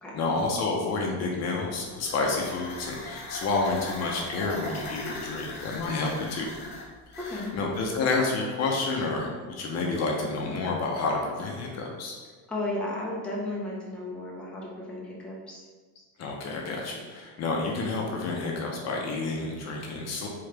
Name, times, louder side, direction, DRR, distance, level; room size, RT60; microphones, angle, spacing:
voice 1, 0.1-6.5 7.3-12.2 16.2-20.3, left 3 dB, 45° left, 0 dB, 0.7 m, -29 dB
sound 1, 1.7-7.9, left 2 dB, 60° left, 1.1 m, -40 dB
voice 2, 12.5-15.6, left 1 dB, 5° left, -5 dB, 0.7 m, -34 dB
3.7 x 3.2 x 3.3 m, 1.4 s
cardioid pair, 140°, 37 cm